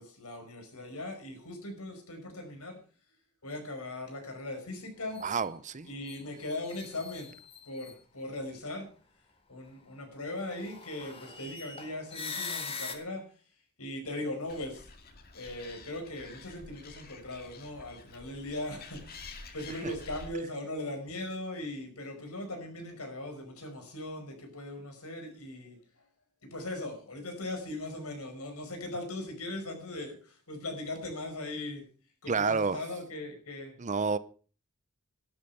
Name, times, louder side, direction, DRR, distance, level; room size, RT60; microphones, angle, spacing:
voice 1, 0.0-2.8 3.4-5.2 5.9-7.3 7.7-8.9 9.5-13.3 13.8-14.9 15.3-25.8 26.4-31.8 32.2-33.7, left 1 dB, 75° left, 5.2 m, -39 dB
sound 1, 5.1-5.5 6.0-7.9 10.3-12.9, left 4 dB, 25° left, 1.9 m, -42 dB
voice 2, 5.2-5.9 19.8-19.9 32.3-32.8 33.8-34.2, right 5 dB, 35° right, 0.6 m, -29 dB
Animal, 14.5-20.3, left 3 dB, 45° left, 2.1 m, -49 dB
12.5 x 12.0 x 5.6 m
head